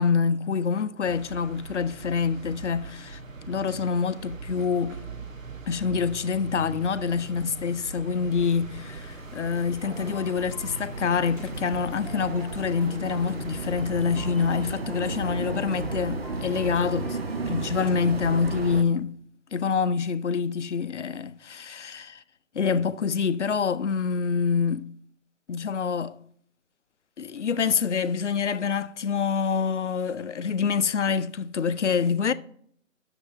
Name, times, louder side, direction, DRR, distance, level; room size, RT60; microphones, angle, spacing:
voice 1, 0.0-3.2 3.5-5.0 5.7-17.2 17.5-19.2 19.5-22.2 22.5-24.8 25.5-26.2 27.2-32.3, left 6 dB, 65° left, 0.5 m, -26 dB
sound 1, 1.0-14.8, right 3 dB, 80° right, 1.1 m, -41 dB
sound 2, 8.8-18.8, right 3 dB, 50° right, 0.7 m, -35 dB
sound 3, 9.9-18.1, left 1 dB, 5° right, 1.3 m, -45 dB
6.7 x 5.3 x 7.0 m
figure-of-eight pair, 150°, 40 cm